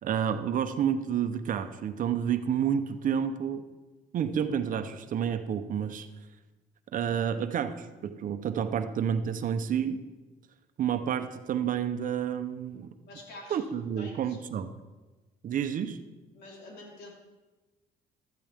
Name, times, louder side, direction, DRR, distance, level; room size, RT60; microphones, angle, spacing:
voice 1, 0.0-3.6 4.1-6.1 6.9-10.0 10.8-12.9 13.5-14.7 15.4-16.0, right 8 dB, 50° right, 9 dB, 0.9 m, -29 dB
voice 2, 13.0-13.6 14.0-14.4 16.3-17.1, left 2 dB, 80° left, -2 dB, 4.1 m, -47 dB
15.0 x 13.5 x 3.6 m, 1.2 s
cardioid pair, 110°, 17 cm